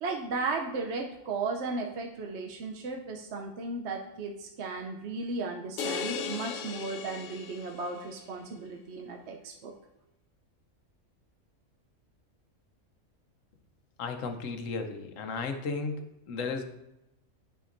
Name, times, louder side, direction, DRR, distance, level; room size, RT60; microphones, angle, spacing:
voice 1, 0.0-9.7, right 3 dB, 65° right, 1 dB, 0.9 m, -35 dB
sound 1, 5.8-8.1, left 6 dB, 60° left, 0.5 m, -37 dB
voice 2, 14.0-16.6, left 4 dB, 80° left, 6 dB, 1.1 m, -34 dB
10.0 x 5.1 x 2.6 m, 0.90 s
omnidirectional pair, 1.3 m